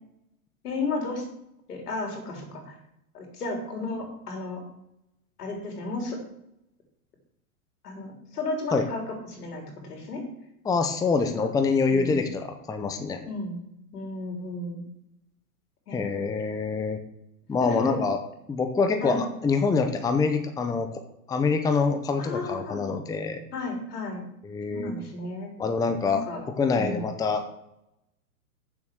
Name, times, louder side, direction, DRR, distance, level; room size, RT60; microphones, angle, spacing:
voice 1, 0.6-1.2 1.7-2.7 3.1-4.6 5.4-6.2 7.8-10.2 11.4-11.5 11.9-12.3 13.2-13.6 13.9-14.8 15.9-16.1 17.6-18.0 19.0-19.3 22.2-22.8 23.5-24.2 24.7-25.5 26.0-26.4 26.8-27.1, left 2 dB, 85° left, 2 dB, 3.8 m, -33 dB
voice 2, 10.6-13.2 15.9-17.0 17.5-18.2 18.5-21.0 21.3-23.4 24.4-24.9 25.6-26.2 26.6-27.4, left 4 dB, 10° left, 7 dB, 0.7 m, -25 dB
9.1 x 7.4 x 6.3 m, 0.83 s
hypercardioid pair, 125°, 45 cm